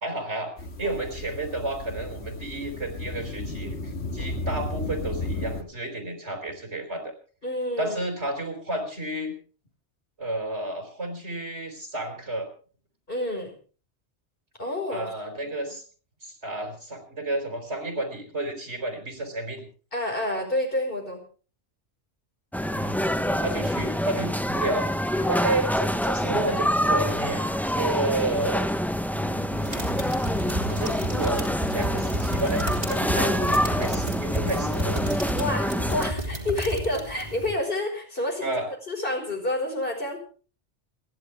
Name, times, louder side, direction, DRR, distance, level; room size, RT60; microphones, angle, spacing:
voice 1, 0.0-7.1 7.8-9.3 10.2-12.5 14.9-15.8 16.2-19.7 22.7-23.0 23.4-24.9 25.3-28.7 29.1-29.5 30.7-35.0 38.4-38.7, right 2 dB, 70° right, 5 dB, 4.4 m, -31 dB
sound 1, 0.6-5.6, left 2 dB, 70° left, 1.9 m, -34 dB
voice 2, 7.4-8.0 13.1-13.5 14.6-15.1 15.4-15.7 19.9-21.2 23.2-23.6 33.1-33.3 35.4-38.6 38.9-40.2, left 1 dB, 50° left, 2 dB, 5.2 m, -29 dB
sound 2, 22.5-36.1, equal, ahead, 0.7 m, -26 dB
sound 3, 29.5-37.5, right 1 dB, 35° right, 3.2 m, -32 dB
29.0 x 11.0 x 3.4 m, 0.38 s
omnidirectional pair, 1.2 m